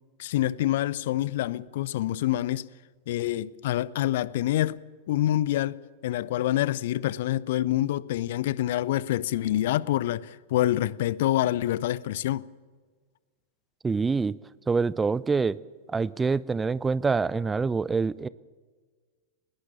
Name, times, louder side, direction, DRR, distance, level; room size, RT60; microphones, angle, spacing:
voice 1, 0.2-2.7 3.1-4.8 5.1-12.4, left 13 dB, 55° left, 0.6 m, -26 dB
voice 2, 13.8-14.4 14.7-15.6 15.9-18.3, right 4 dB, 15° right, 0.5 m, -25 dB
20.5 x 18.0 x 7.2 m
figure-of-eight pair, 90°, 0 cm